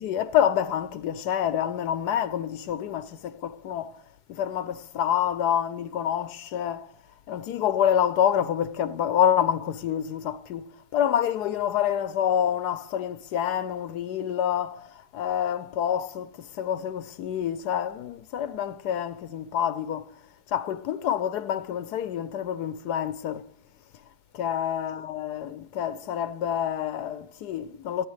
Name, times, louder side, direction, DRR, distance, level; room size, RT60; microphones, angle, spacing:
voice 1, 0.0-4.0 4.3-6.9 7.3-20.1 20.5-23.5 24.3-28.1, left 9 dB, 85° left, 1.2 m, -27 dB
28.0 x 10.5 x 3.2 m
omnidirectional pair, 1.7 m